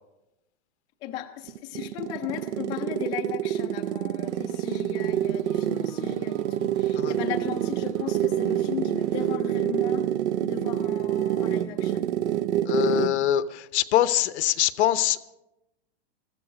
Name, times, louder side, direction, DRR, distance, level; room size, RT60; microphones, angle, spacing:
voice 1, 1.0-10.1 10.4-12.1, left 10 dB, 15° left, 4 dB, 0.4 m, -36 dB
sound 1, 1.5-13.2, right 11 dB, 80° right, 0.6 m, -27 dB
sound 2, 4.2-9.4, right 5 dB, 35° right, 1.2 m, -52 dB
voice 2, 12.6-15.3, left 12 dB, 80° left, 14 dB, 0.8 m, -24 dB
14.5 x 14.0 x 4.9 m, 0.93 s
supercardioid pair, 165°, 33 cm